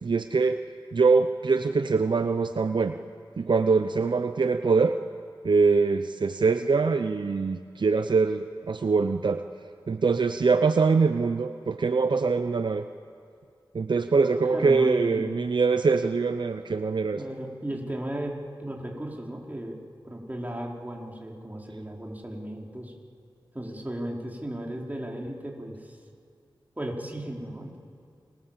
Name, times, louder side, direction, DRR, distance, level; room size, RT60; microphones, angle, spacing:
voice 1, 0.0-0.6 0.9-3.0 3.4-5.0 5.4-9.4 9.9-12.9 13.7-17.2, right 4 dB, 65° right, 9 dB, 0.7 m, -23 dB
voice 2, 14.5-15.2 17.1-18.3 18.6-19.8 20.1-22.9 23.5-26.0 26.8-27.8, right 1 dB, 20° right, -1 dB, 4.5 m, -35 dB
30.0 x 24.0 x 7.4 m, 2.4 s
cardioid pair, 50°, 9 cm